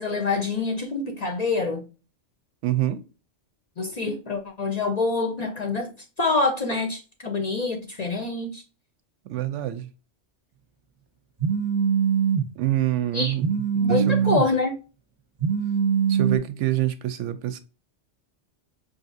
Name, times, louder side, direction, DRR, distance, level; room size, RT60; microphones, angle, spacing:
voice 1, 0.0-1.9 3.8-5.9 6.2-8.6 13.1-13.3 13.8-14.8, left 3 dB, 50° left, 0.5 m, -26 dB
voice 2, 2.6-3.0 9.3-9.9 12.6-13.5 13.7-14.3 16.1-17.6, right 13 dB, 85° right, 0.9 m, -26 dB
Telephone, 11.4-12.4 13.4-14.4 15.4-16.4, right 7 dB, 30° right, 0.5 m, -22 dB
5.2 x 2.6 x 2.5 m
omnidirectional pair, 1.2 m